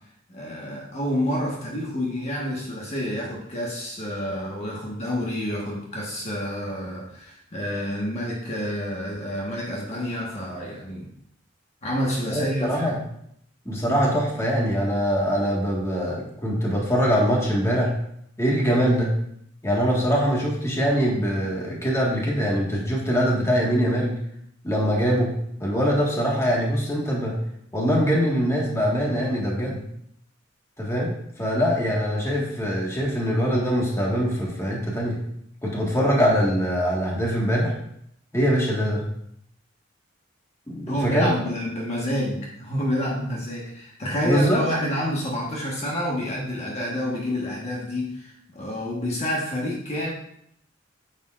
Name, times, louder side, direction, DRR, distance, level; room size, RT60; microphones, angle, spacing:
voice 1, 0.3-11.1 11.8-13.0 40.9-50.1, equal, 35° left, -3 dB, 1.4 m, -28 dB
voice 2, 12.3-13.0 13.6-17.9 18.4-19.1 19.6-24.2 24.6-25.3 25.6-27.4 27.7-29.8 30.8-35.2 35.6-37.7 38.3-39.0 40.7-41.3 44.2-44.6, equal, 15° left, -3 dB, 1.7 m, -23 dB
9.3 x 7.1 x 2.5 m, 0.71 s
head